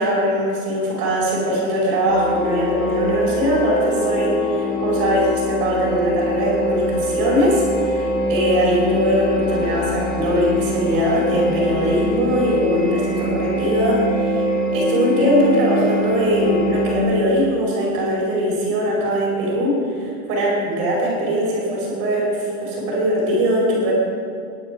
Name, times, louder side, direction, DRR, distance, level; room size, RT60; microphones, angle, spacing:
voice 1, 0.0-14.4 14.7-23.9, equal, 30° right, -3 dB, 4.8 m, -21 dB
sound 1, 2.1-17.0, left 1 dB, 5° left, 0.3 m, -23 dB
21.5 x 11.5 x 5.1 m, 2.4 s
supercardioid pair, 175°, 44 cm